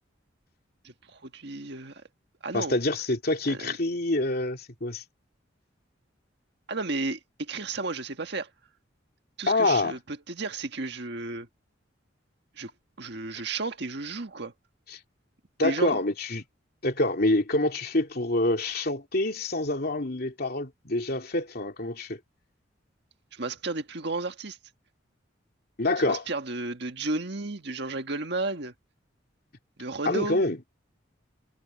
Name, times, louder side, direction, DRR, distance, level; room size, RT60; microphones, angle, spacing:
voice 1, 0.8-2.0 2.4-2.8 3.5-3.7 6.7-8.5 9.4-11.5 12.6-12.7 13.0-14.5 15.6-16.0 23.3-24.6 26.0-28.7 29.8-30.4, right 3 dB, 60° right, 1.7 m, -33 dB
voice 2, 2.5-5.0 9.5-10.0 14.9-15.0 15.6-16.4 16.8-22.2 25.8-26.2 30.0-30.6, left 2 dB, 50° left, 2.8 m, -26 dB
head